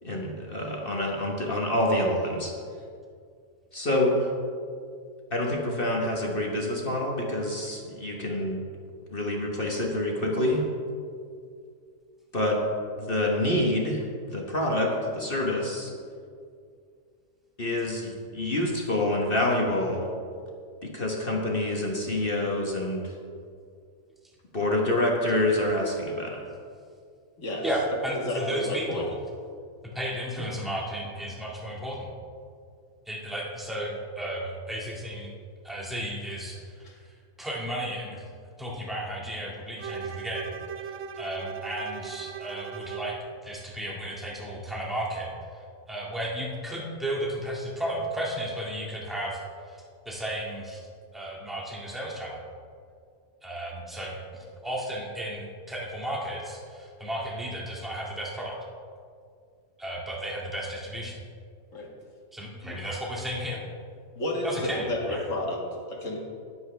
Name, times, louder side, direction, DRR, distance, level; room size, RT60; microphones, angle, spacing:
voice 1, 0.0-2.5 3.7-4.3 5.3-8.6 9.1-10.6 12.3-12.6 13.0-15.9 17.6-20.1 20.8-23.1 24.5-26.4, left 1 dB, 40° left, -1 dB, 1.4 m, -27 dB
voice 2, 27.6-29.2 29.9-32.1 33.1-35.3 35.6-36.9 37.4-38.2 38.6-40.5 40.8-43.2 43.4-45.3 45.9-49.4 49.7-50.8 51.1-52.4 53.4-58.6 59.8-61.2 62.3-63.6 64.4-65.2, right 1 dB, ahead, -4 dB, 1.9 m, -34 dB
voice 3, 28.2-29.0 30.4-30.5 61.7-61.9 62.6-62.8 64.2-66.2, left 1 dB, 60° left, -1 dB, 2.1 m, -31 dB
Bowed string instrument, 39.8-43.2, right 7 dB, 60° right, 0.8 m, -38 dB
20.5 x 7.9 x 3.4 m, 2.2 s
omnidirectional pair, 1.5 m